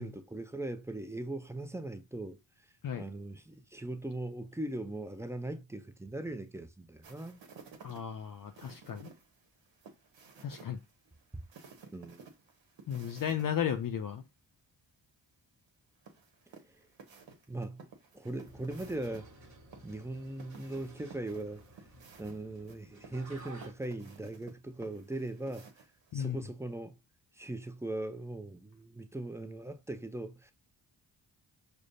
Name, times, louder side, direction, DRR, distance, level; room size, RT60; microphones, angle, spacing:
voice 1, 0.0-2.4 3.0-7.4 11.3-11.4 11.9-12.3 17.5-17.8 18.1-19.3 19.8-21.6 22.2-25.7 26.1-26.9 27.4-30.5, right 2 dB, 5° right, 0.4 m, -39 dB
sound 1, 7.0-13.4 13.8-13.9 16.0-19.2 19.7-26.2, right 5 dB, 75° right, 0.9 m, -54 dB
voice 2, 7.8-9.1 10.4-10.8 12.9-14.2 26.1-26.4, left 8 dB, 50° left, 0.5 m, -34 dB
sound 2, 18.4-23.7, right 2 dB, 40° right, 1.4 m, -54 dB
4.9 x 2.1 x 2.6 m
cardioid pair, 50°, 45 cm